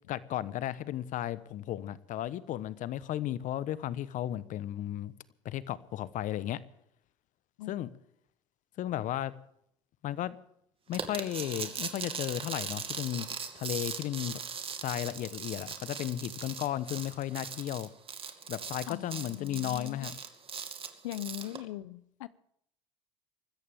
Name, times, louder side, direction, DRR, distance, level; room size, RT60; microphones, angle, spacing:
voice 1, 0.1-5.1 5.4-6.6 7.7-7.9 8.8-9.3 10.0-10.4 10.9-13.3 13.5-14.4 14.8-17.9 18.5-20.2, left 12 dB, 50° left, 1.1 m, -34 dB
sound 1, 10.9-21.6, right 6 dB, 35° right, 2.4 m, -39 dB
voice 2, 18.9-20.1 21.0-22.3, left 15 dB, 80° left, 0.7 m, -40 dB
24.5 x 14.0 x 3.6 m
hypercardioid pair, 75°, 16 cm